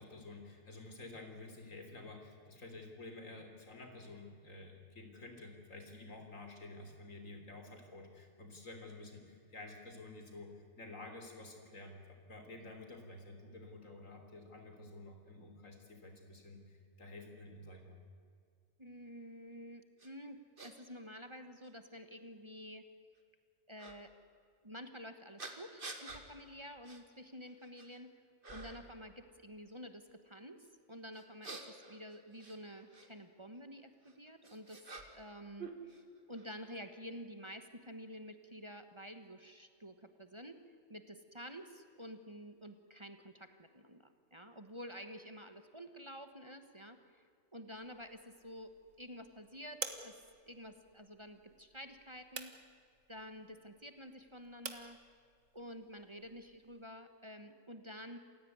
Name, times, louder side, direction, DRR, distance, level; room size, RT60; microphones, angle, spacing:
voice 1, 0.0-18.0, left 2 dB, 80° left, 4 dB, 3.9 m, -51 dB
voice 2, 18.8-22.9 23.7-24.1 24.6-28.1 28.5-34.8 35.1-36.0 36.3-40.6 40.9-47.2 47.5-50.1 50.5-52.5 53.1-55.0 55.5-58.2, equal, 25° right, 8 dB, 1.3 m, -50 dB
sound 1, 20.0-20.1 20.6-20.7 21.6-21.7 23.8-24.0 25.4-26.2 26.8-27.0 27.5-28.0 28.4-28.9 31.1-33.1 34.0-35.3 35.6-36.5, right 3 dB, 40° right, 2.4 m, -49 dB
sound 2, 47.7-56.9, right 5 dB, 85° right, 2.1 m, -51 dB
28.0 x 16.5 x 9.6 m, 2.2 s
omnidirectional pair, 1.3 m